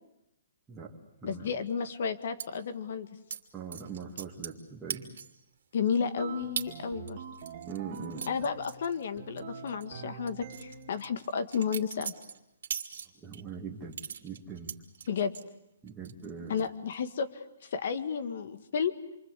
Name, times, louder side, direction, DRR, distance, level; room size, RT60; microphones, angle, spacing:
voice 1, 0.7-1.5 3.5-5.1 7.6-8.5 13.1-14.8 15.8-16.5, right 5 dB, 10° right, -4 dB, 2.5 m, -42 dB
voice 2, 1.2-3.1 5.7-7.2 8.3-12.1 15.1-15.3 16.5-18.9, left 6 dB, 60° left, 10 dB, 1.8 m, -32 dB
sound 1, 2.4-2.5 3.3-3.4 3.7-4.6 4.9-5.4 5.9-6.0 6.6-6.7 7.1-9.4 9.7-9.8 10.3-13.4 13.9-15.5 15.9-16.3 16.6-17.0, right 7 dB, 75° right, 2.8 m, -39 dB
sound 2, 6.2-8.8 9.2-11.0, right 6 dB, 40° right, 3.1 m, -45 dB
28.0 x 24.0 x 8.4 m, 0.86 s
hypercardioid pair, 160°, 0 cm